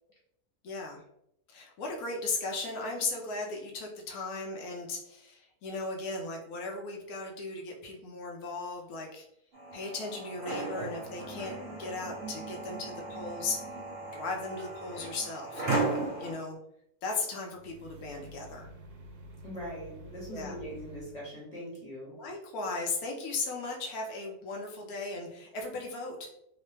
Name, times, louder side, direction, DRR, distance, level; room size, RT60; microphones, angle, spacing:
voice 1, 0.6-1.0 1.5-9.3 9.7-13.6 14.1-15.8 16.2-16.6 17.0-18.7 20.3-20.5 22.1-26.3, left 3 dB, 75° left, 1 dB, 1.2 m, -37 dB
sound 1, 9.5-16.3, right 2 dB, 35° right, 1.1 m, -36 dB
sound 2, 17.5-21.2, right 1 dB, 75° right, 1.0 m, -48 dB
voice 2, 19.4-22.2, equal, 30° left, -5 dB, 0.9 m, -41 dB
3.1 x 2.0 x 3.2 m, 0.76 s
omnidirectional pair, 1.6 m